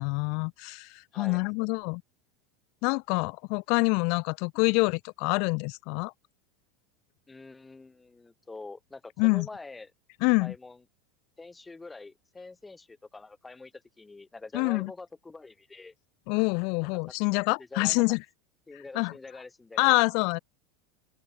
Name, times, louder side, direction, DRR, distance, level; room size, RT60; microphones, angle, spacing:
voice 1, 0.0-2.0 2.8-6.1 9.2-9.5 10.2-10.5 14.5-14.9 16.3-18.2 18.9-19.1 19.8-20.4, left 34 dB, 60° left, 0.5 m, -26 dB
voice 2, 7.3-9.9 10.4-10.8 11.4-15.9 17.6-18.2 18.7-20.0, left 3 dB, 15° left, 3.5 m, -45 dB
open air
hypercardioid pair, 95°, 0 cm